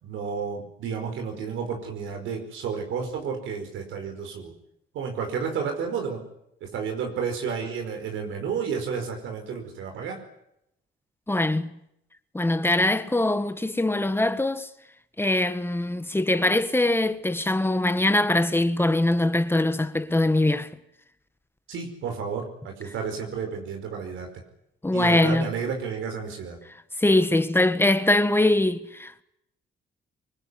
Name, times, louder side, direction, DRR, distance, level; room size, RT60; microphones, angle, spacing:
voice 1, 0.0-4.5 4.9-6.2 6.6-10.2 21.7-24.3 24.9-26.6, right 6 dB, 85° right, 5.0 m, -31 dB
voice 2, 11.3-11.7 12.3-14.7 15.2-20.7 24.8-25.5 27.0-29.2, left 2 dB, 10° left, 1.6 m, -22 dB
24.5 x 20.0 x 9.9 m
cardioid pair, 90°, 20 cm